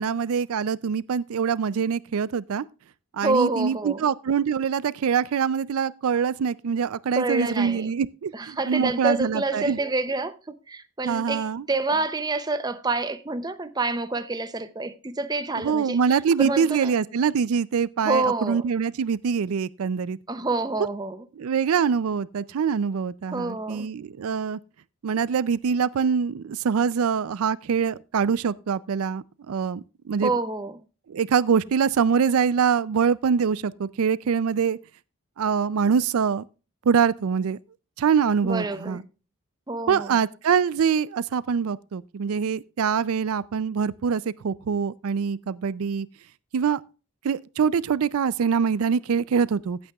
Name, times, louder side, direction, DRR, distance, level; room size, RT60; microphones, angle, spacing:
voice 1, 0.0-2.6 3.1-9.8 11.0-11.6 15.6-20.2 21.4-24.6 25.0-30.3 31.1-34.8 35.4-36.4 36.9-37.6 38.0-39.0 39.9-46.1 46.5-46.8 47.2-49.8, right 6 dB, 75° right, 0.4 m, -24 dB
voice 2, 3.2-4.1 7.2-7.9 8.3-16.0 16.4-16.9 18.0-18.7 20.3-21.2 23.3-23.9 30.2-30.8 38.4-39.0 39.7-40.2, right 3 dB, 20° right, 0.5 m, -27 dB
15.5 x 8.8 x 2.3 m
head